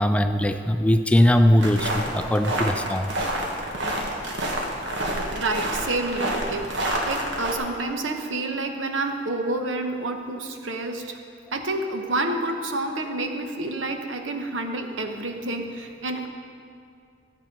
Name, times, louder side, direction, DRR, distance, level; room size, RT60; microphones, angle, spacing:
voice 1, 0.0-3.1, left 1 dB, 5° left, 8 dB, 0.3 m, -20 dB
sound 1, 1.6-7.6, right 1 dB, 70° right, 1.5 m, -28 dB
voice 2, 5.1-11.2 11.5-16.3, right 2 dB, 85° right, 5 dB, 1.0 m, -29 dB
13.5 x 8.1 x 5.3 m, 2.4 s
head